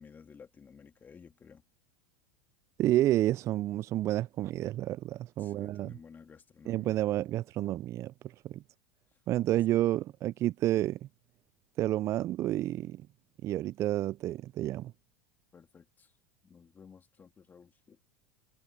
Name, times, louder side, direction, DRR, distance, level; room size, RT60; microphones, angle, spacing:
voice 1, 0.0-1.6 5.4-7.0 15.5-16.1 16.4-18.0, left 6 dB, 25° left, 3.1 m, -54 dB
voice 2, 2.8-6.0 6.7-8.6 9.3-11.0 11.8-13.0 13.4-14.9, right 14 dB, 40° right, 0.4 m, -30 dB
hypercardioid pair, 90°, 7 cm